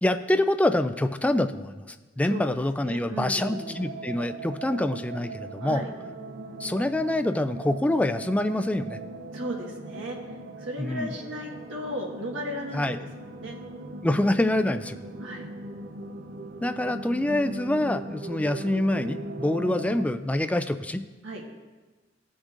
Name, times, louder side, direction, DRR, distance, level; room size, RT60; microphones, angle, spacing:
voice 1, 0.0-5.8 6.6-9.0 10.8-11.2 12.7-13.1 14.0-15.0 16.6-21.0, left 1 dB, 5° left, 9 dB, 0.3 m, -26 dB
voice 2, 2.2-2.5 2.8-3.8 5.6-5.9 9.3-10.2 10.6-13.0 13.3-13.6 15.2-15.5 21.2-21.4, equal, 80° right, 0 dB, 1.5 m, -35 dB
sound 1, 3.4-20.1, right 2 dB, 50° right, 0.6 m, -39 dB
16.5 x 6.2 x 2.5 m, 1.3 s
head